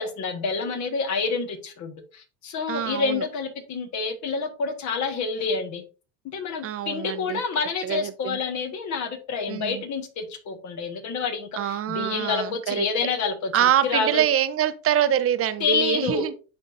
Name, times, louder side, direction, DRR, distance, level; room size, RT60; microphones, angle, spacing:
voice 1, 0.0-5.8 6.2-14.2 15.6-16.3, left 5 dB, 50° left, 1.5 m, -28 dB
voice 2, 2.7-3.3 6.6-7.4 7.8-8.4 9.5-9.8 11.6-12.8 13.5-16.3, right 10 dB, 40° right, 0.7 m, -25 dB
10.5 x 3.6 x 2.6 m
supercardioid pair, 95°, 37 cm